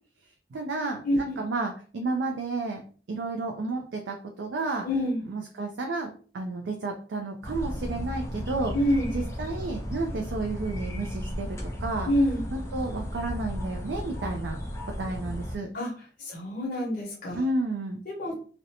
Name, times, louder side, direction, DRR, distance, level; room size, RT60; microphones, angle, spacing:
voice 1, 0.5-2.8 3.1-4.9 5.2-8.7 9.1-11.5 11.8-12.1 12.5-14.6 15.0-15.7 17.4-18.0, right 3 dB, 85° right, 3 dB, 0.4 m, -31 dB
voice 2, 1.0-1.4 4.8-5.2 8.7-9.1 12.1-12.4 15.7-15.9 16.2-17.4 18.1-18.3, left 1 dB, 50° left, -3 dB, 0.8 m, -26 dB
sound 1, 7.4-15.6, equal, 15° left, 0.4 m, -34 dB
2.5 x 2.1 x 2.8 m, 0.41 s
head